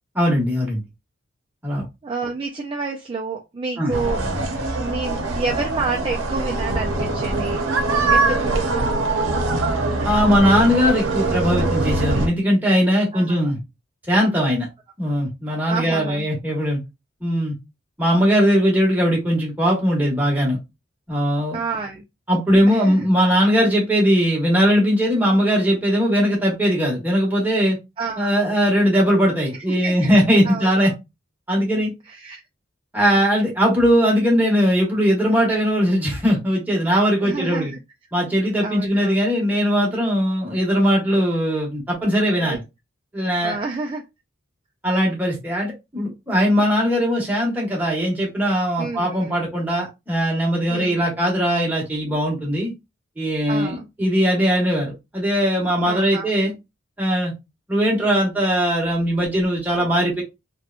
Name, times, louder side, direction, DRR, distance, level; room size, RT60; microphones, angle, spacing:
voice 1, 0.2-0.8 1.6-1.8 3.8-3.9 10.0-13.6 14.1-14.7 15.0-16.8 17.2-17.5 18.0-20.6 21.1-21.6 22.3-27.8 28.2-30.9 31.5-31.9 32.9-37.7 38.1-42.6 43.1-43.6 44.8-52.7 53.2-56.5 57.0-57.3 57.7-60.2, equal, 10° right, -3 dB, 1.0 m, -19 dB
voice 2, 2.0-4.2 4.8-7.6 8.1-8.5 13.1-13.4 15.6-16.3 21.5-22.0 22.7-23.1 28.0-28.4 29.7-30.1 30.4-30.9 32.1-32.4 33.2-33.3 37.2-37.7 38.6-39.2 42.4-42.6 43.4-44.0 48.8-49.3 50.7-51.0 53.5-53.9 55.8-56.3, right 4 dB, 25° right, 1 dB, 0.3 m, -29 dB
sound 1, 3.9-12.3, right 2 dB, 75° right, 0.7 m, -22 dB
2.9 x 2.1 x 2.4 m, 0.23 s
head